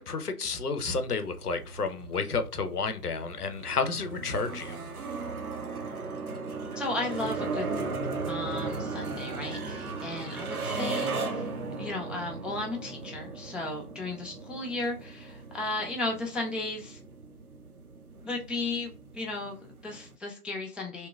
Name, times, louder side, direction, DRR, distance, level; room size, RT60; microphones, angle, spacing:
voice 1, 0.0-4.8, left 4 dB, 75° left, 9 dB, 0.6 m, -31 dB
sound 1, 0.8-20.1, right 3 dB, 65° right, 0.6 m, -37 dB
voice 2, 6.8-7.7 8.3-11.5 11.8-17.0 18.2-21.1, left 2 dB, 5° right, 1 dB, 0.3 m, -35 dB
2.7 x 2.2 x 2.2 m, 0.37 s
figure-of-eight pair, 165°, 47 cm